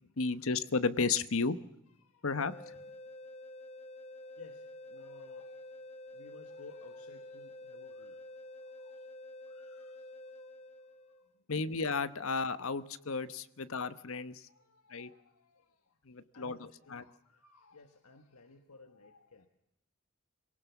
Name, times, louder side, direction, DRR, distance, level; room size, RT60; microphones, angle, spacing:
voice 1, 0.2-1.6 2.2-2.5 11.5-14.4 14.9-15.1 16.1-17.0, left 4 dB, 65° left, 13 dB, 1.0 m, -33 dB
voice 2, 2.0-2.5 4.2-5.8 6.1-10.5 11.1-11.2 13.2-13.3 13.8-14.0 14.5-16.0 16.3-19.5, left 4 dB, 85° left, 6 dB, 1.5 m, -58 dB
sound 1, 2.4-11.3, left 1 dB, 30° left, 1.1 m, -49 dB
23.0 x 18.0 x 7.0 m, 0.82 s
head